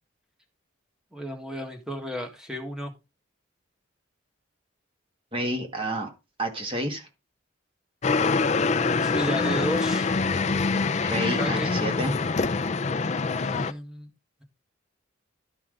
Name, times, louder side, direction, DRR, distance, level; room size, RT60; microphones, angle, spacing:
voice 1, 1.1-2.9 8.8-10.1 11.2-11.7 13.4-14.1, equal, 5° right, 1.6 m, -33 dB
voice 2, 5.3-6.1 6.4-7.1 11.0-12.2, right 1 dB, 25° right, 1.6 m, -30 dB
sound 1, 8.0-13.7, left 4 dB, 35° left, 0.4 m, -25 dB
12.5 x 5.7 x 3.8 m
head